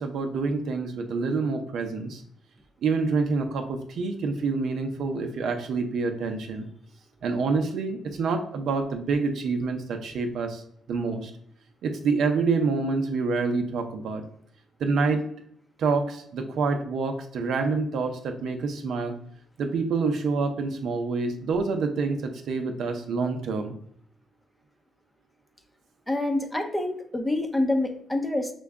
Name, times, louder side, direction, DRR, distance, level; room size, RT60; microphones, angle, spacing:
voice 1, 0.0-2.2 2.8-6.7 7.2-10.6 10.9-11.3 11.8-14.2 14.8-15.2 15.8-19.1 19.6-23.7, right 4 dB, 70° right, 5 dB, 0.6 m, -27 dB
voice 2, 26.1-28.5, left 2 dB, 10° left, 5 dB, 0.7 m, -26 dB
6.0 x 2.2 x 3.5 m, 0.69 s
cardioid pair, 90°, 0 cm